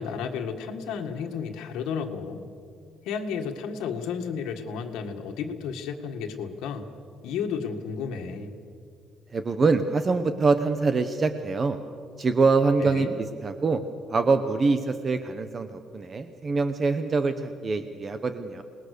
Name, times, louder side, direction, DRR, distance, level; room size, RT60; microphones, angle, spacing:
voice 1, 0.0-2.4 3.1-6.9 7.2-8.5 12.8-13.1, left 6 dB, 90° left, 4 dB, 1.7 m, -32 dB
voice 2, 9.3-11.8 12.2-13.1 13.4-13.8 14.1-18.6, right 4 dB, 25° right, 9 dB, 0.8 m, -24 dB
28.0 x 20.0 x 6.6 m, 2.4 s
cardioid pair, 175°, 0 cm